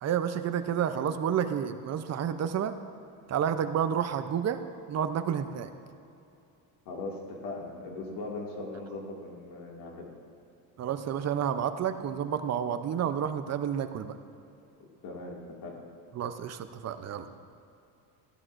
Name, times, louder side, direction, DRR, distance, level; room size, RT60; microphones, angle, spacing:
voice 1, 0.0-2.7 3.3-4.6 4.9-5.7 10.8-14.1 16.2-17.3, right 8 dB, 40° right, 10 dB, 0.7 m, -30 dB
voice 2, 6.9-10.1 14.8-15.8 17.2-17.3, left 2 dB, 65° left, -1 dB, 2.3 m, -39 dB
15.0 x 11.0 x 2.6 m, 2.7 s
cardioid pair, 110°, 43 cm